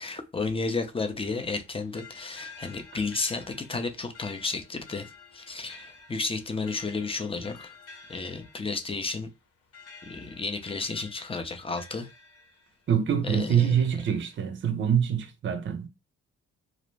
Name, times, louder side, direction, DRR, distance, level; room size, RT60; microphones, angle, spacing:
voice 1, 0.0-7.7 8.1-9.3 10.0-12.1 13.2-13.8, left 3 dB, 20° left, 0.5 m, -32 dB
sound 1, 1.2-12.9 13.4-14.4, left 5 dB, 50° left, 1.0 m, -51 dB
voice 2, 12.9-15.9, right 8 dB, 40° right, 0.5 m, -25 dB
2.5 x 2.0 x 3.1 m
cardioid pair, 90°, 30 cm